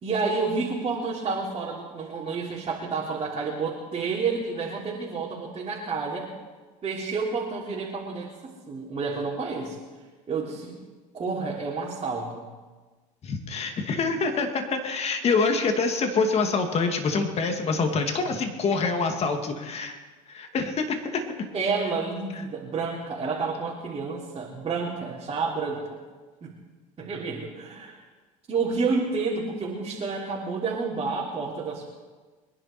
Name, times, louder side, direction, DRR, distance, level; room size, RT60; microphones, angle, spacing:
voice 1, 0.0-6.3 6.8-9.8 10.3-10.7 11.1-12.5 21.5-25.8 26.4-26.5 27.0-28.0 28.5-31.8, right 4 dB, 35° right, -5 dB, 3.3 m, -29 dB
voice 2, 13.2-20.0 20.3-21.2, left 4 dB, 40° left, 5 dB, 2.5 m, -26 dB
24.0 x 11.0 x 4.5 m, 1.3 s
supercardioid pair, 90°, 17 cm